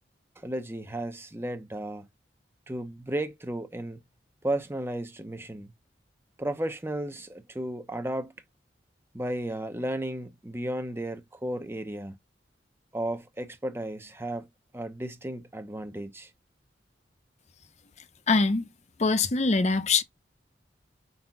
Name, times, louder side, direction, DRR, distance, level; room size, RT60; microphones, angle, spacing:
voice 1, 0.4-2.1 2.7-4.0 4.4-5.7 6.4-8.3 9.1-12.1 12.9-14.5 14.7-16.3, right 1 dB, 15° right, 0.7 m, -34 dB
voice 2, 18.3-18.6 19.0-20.0, left 3 dB, 35° left, 0.7 m, -23 dB
5.0 x 4.0 x 5.9 m
head